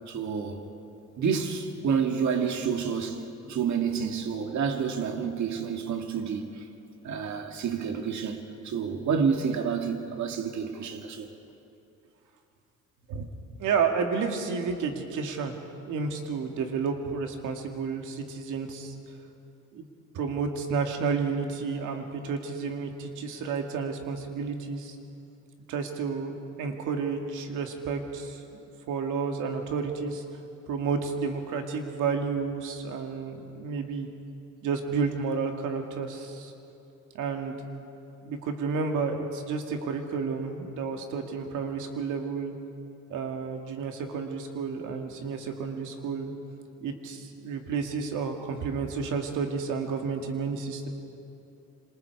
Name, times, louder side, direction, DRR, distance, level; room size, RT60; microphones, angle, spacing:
voice 1, 0.1-0.6 1.2-6.6 7.0-8.4 8.6-11.3, right 6 dB, 70° right, 2.2 m, -29 dB
voice 2, 13.6-18.9 19.7-19.9 20.1-25.0 25.7-28.4 28.9-30.2 30.7-34.1 34.6-36.5 37.1-37.6 38.2-42.5 43.1-46.3 46.8-50.9, right 5 dB, 90° right, 2.2 m, -31 dB
27.0 x 26.5 x 4.8 m
cardioid pair, 90°, 30 cm